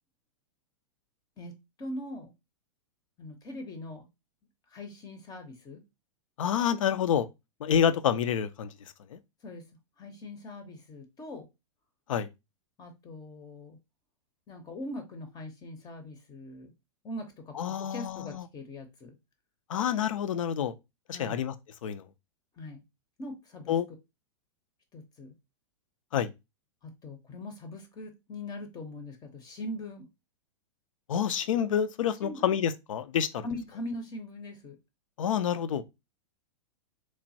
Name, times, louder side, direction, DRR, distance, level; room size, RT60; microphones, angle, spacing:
voice 1, 1.8-2.3 3.2-4.1 4.7-5.8 9.4-9.6 10.0-11.5 12.8-13.8 14.5-16.7 17.0-19.1 21.1-21.4 22.6-22.8 23.2-23.7 24.9-25.3 26.8-30.1 32.2-32.6 33.4-34.8, left 1 dB, 25° left, 0.5 m, -41 dB
voice 2, 6.4-7.3 7.6-8.7 9.1-9.2 12.1-12.3 17.6-18.4 19.7-20.7 21.1-21.5 21.8-22.0 23.7-23.9 26.1-26.3 31.1-33.5 35.2-35.8, left 8 dB, 80° left, 0.4 m, -28 dB
3.1 x 2.2 x 2.6 m
hypercardioid pair, 115°, 16 cm